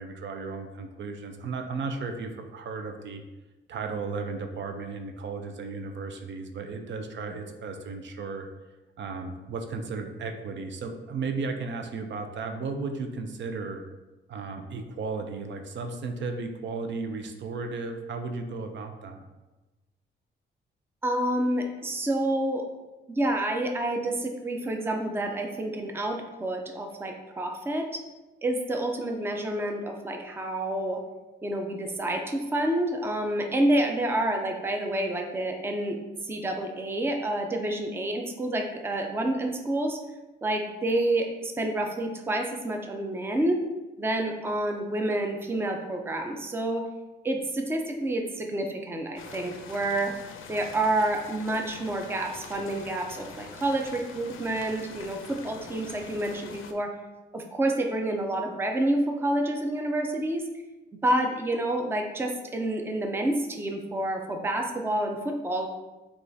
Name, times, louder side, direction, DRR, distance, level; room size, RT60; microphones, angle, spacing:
voice 1, 0.0-3.2 3.7-8.5 9.0-13.8 14.3-19.3, right 4 dB, 65° right, 5 dB, 0.5 m, -35 dB
voice 2, 21.0-22.6 23.1-28.0 28.4-31.0 31.4-36.0 36.2-40.0 40.4-43.6 44.0-46.9 47.2-50.1 50.5-56.9 57.3-60.5 61.0-65.7, right 1 dB, 10° right, 3 dB, 0.4 m, -28 dB
sound 1, 49.2-56.7, left 5 dB, 90° left, 0.5 m, -45 dB
6.6 x 2.4 x 2.6 m, 1.1 s
cardioid pair, 110°, 20 cm